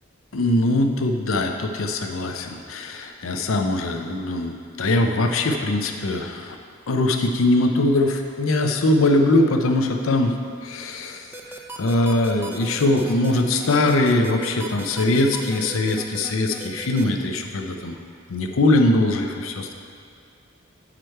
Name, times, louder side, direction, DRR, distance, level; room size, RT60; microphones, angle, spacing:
voice 1, 0.3-6.6 6.9-10.3 10.6-18.0 18.3-19.7, left 2 dB, 80° left, 4 dB, 0.6 m, -21 dB
sound 1, 11.3-17.0, right 2 dB, 10° right, 0.4 m, -36 dB
7.8 x 4.9 x 4.5 m, 2.4 s
head